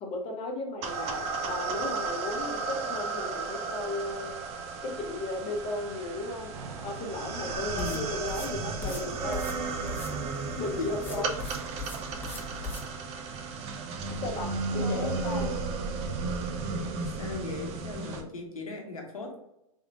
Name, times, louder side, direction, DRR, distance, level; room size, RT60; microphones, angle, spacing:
voice 1, 0.0-4.4 4.8-6.5 6.8-9.5 10.6-11.3 14.2-15.6, left 2 dB, 35° left, 1 dB, 1.0 m, -35 dB
sound 1, 0.8-18.2, right 4 dB, 35° right, 0.5 m, -34 dB
Thunder / Rain, 6.5-16.9, right 4 dB, 75° right, 0.7 m, -46 dB
sound 2, 7.6-12.9, left 3 dB, 10° left, 1.0 m, -41 dB
voice 2, 7.7-8.1 10.8-10.9 14.7-15.6 17.2-19.4, left 4 dB, 85° left, 2 dB, 1.0 m, -37 dB
3.6 x 3.3 x 2.5 m, 0.86 s
hypercardioid pair, 100°, 18 cm